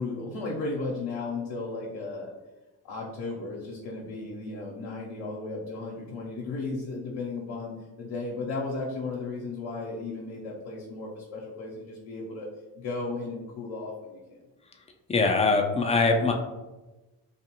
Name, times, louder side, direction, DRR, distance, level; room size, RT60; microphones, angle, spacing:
voice 1, 0.0-2.3 2.8-12.5 12.7-14.4, left 3 dB, 65° left, -3 dB, 0.7 m, -35 dB
voice 2, 15.1-16.3, left 3 dB, 15° left, 2 dB, 0.3 m, -22 dB
2.5 x 2.4 x 2.8 m, 1.1 s
hypercardioid pair, 45°, 49 cm